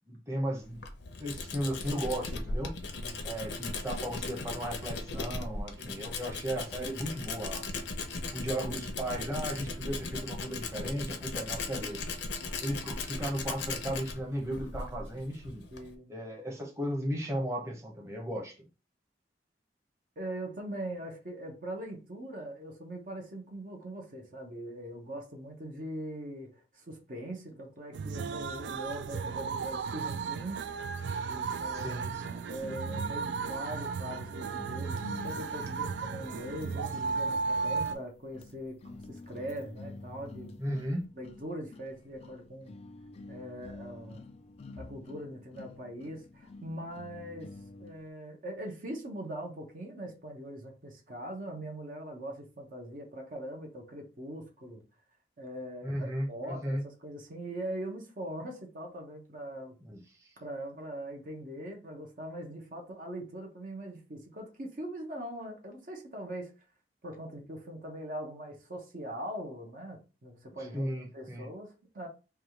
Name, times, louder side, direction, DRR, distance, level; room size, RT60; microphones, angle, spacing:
voice 1, 0.1-0.8 1.2-2.7 3.2-7.7 8.3-12.0 12.6-15.6 16.1-18.6 31.7-32.4 40.6-41.0 55.8-56.8 59.8-60.3 70.7-71.5, equal, 15° right, 1.0 m, -35 dB
Tools, 0.6-16.0, left 3 dB, 85° left, 0.7 m, -38 dB
voice 2, 3.0-3.3 5.8-6.1 15.7-16.2 20.2-30.7 31.3-32.0 32.5-40.8 41.2-42.8 43.3-44.2 44.8-54.8 55.4-59.7 60.4-66.5 67.0-72.1, right 1 dB, 50° right, 0.9 m, -41 dB
sound 1, 27.9-37.9, right 5 dB, 80° right, 0.4 m, -35 dB
sound 2, 32.6-48.1, left 2 dB, 35° left, 0.3 m, -48 dB
3.4 x 2.3 x 4.3 m
head